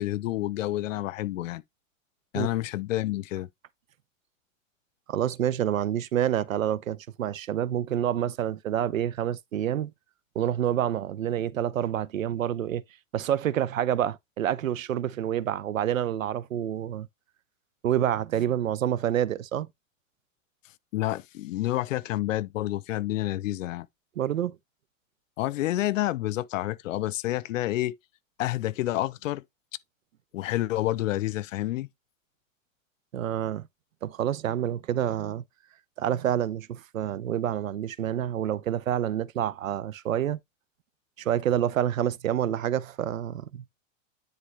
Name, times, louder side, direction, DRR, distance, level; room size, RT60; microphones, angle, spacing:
voice 1, 0.0-1.6 2.3-3.5 20.9-23.9 25.4-27.9 28.4-29.4 30.3-31.9, left 15 dB, 75° left, 0.7 m, -29 dB
voice 2, 5.1-9.9 10.3-12.8 13.1-17.1 17.8-19.7 24.2-24.6 33.1-33.7 34.0-35.4 36.0-40.4 41.2-43.6, right 10 dB, 90° right, 0.7 m, -28 dB
9.9 x 3.9 x 3.2 m
hypercardioid pair, 105°, 39 cm